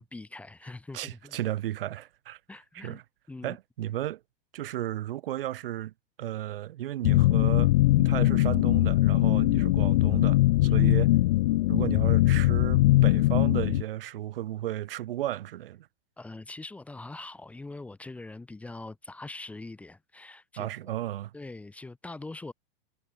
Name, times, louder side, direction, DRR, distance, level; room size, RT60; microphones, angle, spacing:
voice 1, 0.0-1.4 2.5-3.0 3.3-3.6 10.6-10.8 16.2-20.9 21.3-22.5, left 2 dB, 5° left, 2.5 m, -43 dB
voice 2, 0.9-2.4 2.7-3.0 3.4-4.2 4.5-5.9 6.2-7.7 8.0-11.1 11.7-15.9 20.6-21.3, right 13 dB, 70° right, 5.8 m, -34 dB
sound 1, 7.0-13.8, left 17 dB, 45° left, 0.6 m, -21 dB
supercardioid pair, 175°, 29 cm